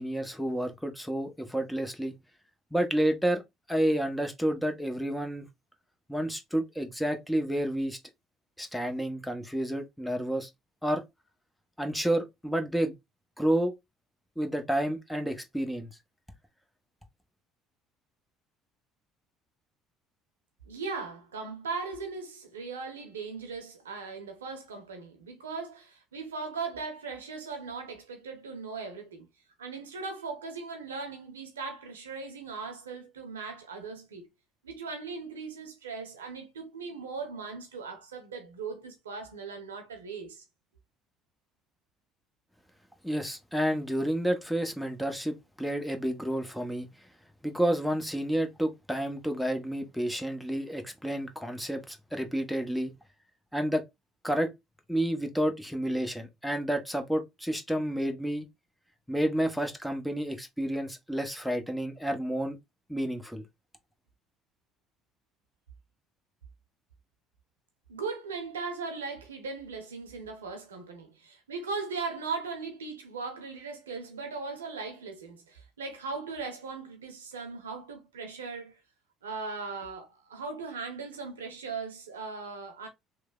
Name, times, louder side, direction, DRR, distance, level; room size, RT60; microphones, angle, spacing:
voice 1, 0.0-2.1 2.7-3.4 3.7-5.5 6.1-8.0 8.6-10.5 10.8-11.0 11.8-12.9 13.4-13.7 14.4-15.9 43.0-46.9 47.4-52.9 53.5-53.8 54.2-54.5 54.9-58.5 59.1-62.6 62.9-63.4, right 1 dB, 5° left, 0.8 m, -30 dB
voice 2, 20.7-29.3 29.6-34.3 34.6-40.4 67.9-78.8 79.2-82.9, right 4 dB, 90° right, 0.7 m, -38 dB
3.1 x 2.1 x 2.3 m
hypercardioid pair, 60°, 0 cm